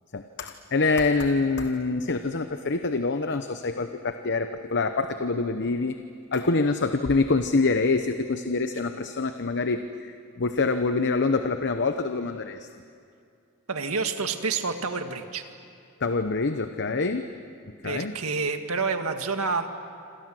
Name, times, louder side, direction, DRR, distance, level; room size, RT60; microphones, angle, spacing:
voice 1, 0.1-6.0 6.3-12.7 16.0-17.3 17.8-18.1, left 3 dB, 55° left, 8 dB, 0.9 m, -25 dB
voice 2, 13.7-15.4 17.8-19.7, right 4 dB, 85° right, 6 dB, 1.9 m, -28 dB
27.5 x 27.0 x 7.7 m, 2.4 s
head